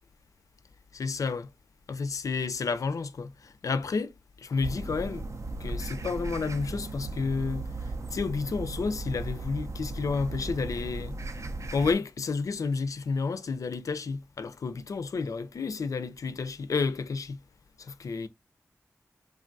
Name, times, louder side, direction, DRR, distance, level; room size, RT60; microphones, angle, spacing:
voice 1, 0.9-1.5 1.9-5.2 5.6-7.7 8.1-11.2 11.7-17.4 17.8-18.3, left 4 dB, 75° left, 0.4 m, -31 dB
sound 1, 4.6-11.9, right 2 dB, 60° right, 0.4 m, -36 dB
3.2 x 2.3 x 2.5 m
cardioid pair, 50°, 6 cm